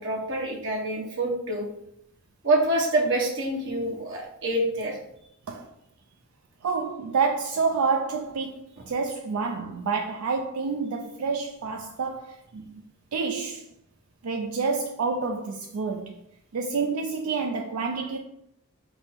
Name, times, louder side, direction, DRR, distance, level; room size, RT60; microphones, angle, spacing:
voice 1, 0.0-1.7 2.4-5.0, right 1 dB, 60° right, 1.2 m, -26 dB
voice 2, 6.6-12.7 13.1-13.7 14.2-16.1 16.5-18.2, right 4 dB, 85° right, 0.4 m, -28 dB
5.3 x 2.0 x 4.2 m
head